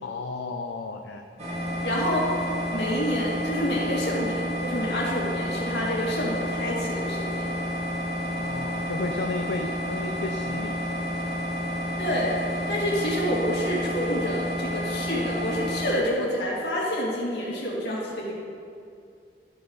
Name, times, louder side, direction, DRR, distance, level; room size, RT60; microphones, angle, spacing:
voice 1, 0.0-1.3 8.2-11.4, left 3 dB, 90° left, 3 dB, 0.5 m, -34 dB
sound 1, 1.4-15.9, equal, 40° right, 2.1 m, -30 dB
voice 2, 1.8-2.3 2.7-7.5 12.0-18.3, equal, 65° left, -5 dB, 2.2 m, -28 dB
13.0 x 5.5 x 3.9 m, 2.3 s
head